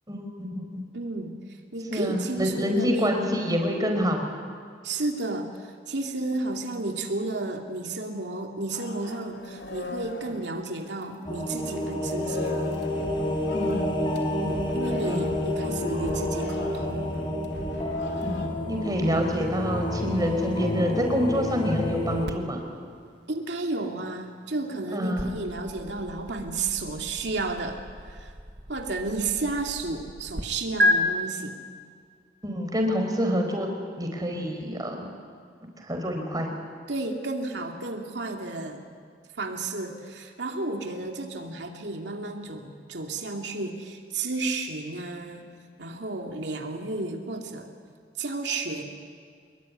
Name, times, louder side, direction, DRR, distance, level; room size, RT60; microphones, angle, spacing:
voice 1, 0.1-0.8 1.9-4.3 13.5-14.0 15.0-15.2 18.2-22.6 24.9-25.3 32.4-33.7 34.0-35.1 35.8-36.5, equal, 20° right, 3 dB, 4.8 m, -27 dB
voice 2, 0.9-1.4 1.7-3.1 4.8-12.7 14.4-17.1 23.3-28.3 28.7-31.6 36.9-38.8 39.4-45.5 45.8-47.7 48.2-48.8, right 3 dB, 85° right, 2 dB, 2.5 m, -32 dB
sound 1, 8.7-11.3 11.6-18.5, left 1 dB, 75° left, 3.1 m, -39 dB
sound 2, 11.2-22.3, left 1 dB, 30° left, 4.0 m, -29 dB
sound 3, 22.2-30.4 30.8-30.9, left 1 dB, 70° right, 1.7 m, -32 dB
25.5 x 22.0 x 9.9 m, 2.1 s
head